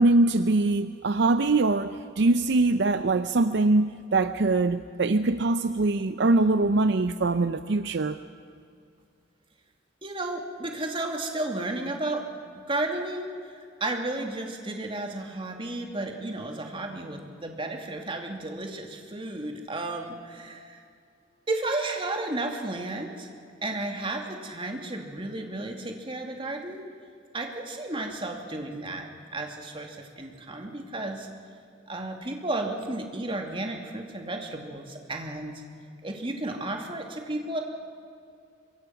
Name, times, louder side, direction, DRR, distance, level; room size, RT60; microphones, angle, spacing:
voice 1, 0.0-8.2, right 2 dB, 65° right, 11 dB, 0.6 m, -23 dB
voice 2, 10.0-12.2 12.7-20.8 21.5-23.3 23.6-26.8 27.3-31.3 31.9-35.6 36.0-37.6, right 2 dB, 30° right, 3 dB, 2.6 m, -33 dB
25.5 x 23.0 x 5.9 m, 2.3 s
head